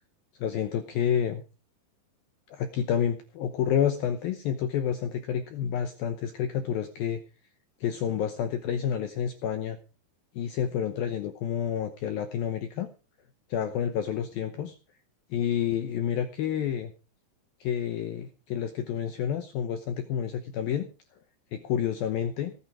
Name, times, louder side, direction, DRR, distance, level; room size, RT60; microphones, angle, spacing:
voice 1, 0.4-1.4 2.5-7.2 7.8-9.8 10.4-12.9 13.5-14.8 15.3-16.9 17.6-20.9 21.5-22.5, left 8 dB, 80° left, 9 dB, 2.1 m, -29 dB
18.0 x 9.5 x 4.8 m, 0.33 s
omnidirectional pair, 5.6 m